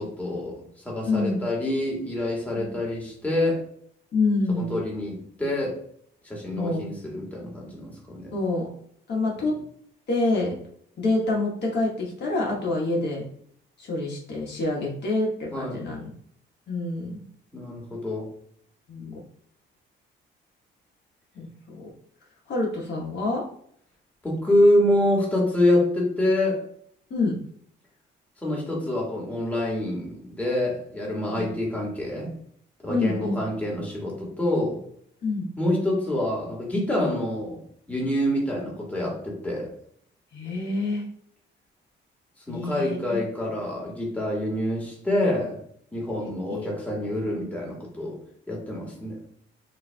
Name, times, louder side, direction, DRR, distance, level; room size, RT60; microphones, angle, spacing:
voice 1, 0.0-3.6 4.5-5.8 6.2-8.3 15.5-15.8 17.5-18.3 24.2-26.6 28.4-32.3 32.8-34.8 35.6-37.6 37.9-39.7 42.5-45.6 45.9-48.2 48.5-49.2, left 1 dB, 5° left, -3 dB, 1.6 m, -26 dB
voice 2, 1.1-1.5 2.5-2.8 4.1-4.7 6.5-6.9 8.3-8.7 9.1-9.6 10.1-10.5 11.0-13.2 13.8-16.1 16.7-17.2 18.9-19.1 21.3-21.8 22.5-23.4 27.1-27.4 31.3-31.5 32.9-33.4 35.2-35.5 40.3-41.0 42.5-43.2 46.5-46.7, left 2 dB, 60° left, -2 dB, 1.2 m, -27 dB
6.5 x 2.6 x 2.2 m, 0.65 s
cardioid pair, 90°, 20 cm